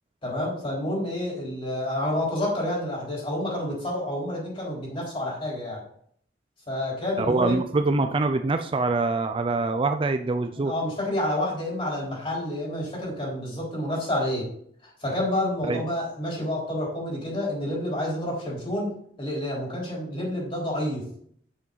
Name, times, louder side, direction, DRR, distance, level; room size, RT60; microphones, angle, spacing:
voice 1, 0.2-5.8 6.7-7.6 10.6-14.5 14.8-21.1, left 1 dB, 30° left, -4 dB, 4.1 m, -29 dB
voice 2, 7.2-10.7 15.6-15.8, right 3 dB, 30° right, 8 dB, 0.4 m, -24 dB
8.6 x 7.3 x 4.0 m, 0.65 s
head